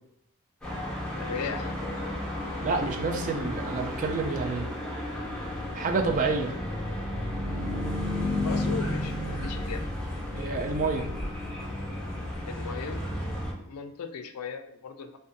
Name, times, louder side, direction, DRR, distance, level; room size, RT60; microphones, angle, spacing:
sound 1, 0.6-13.5, left 1 dB, 5° left, 0.6 m, -32 dB
voice 1, 1.2-1.7 8.4-9.9 12.5-13.1 13.5-15.2, left 6 dB, 75° left, 7 dB, 0.3 m, -37 dB
voice 2, 2.6-4.7 5.7-6.6 10.3-11.1, right 4 dB, 35° right, 4 dB, 0.3 m, -28 dB
2.5 x 2.1 x 2.6 m, 0.81 s
head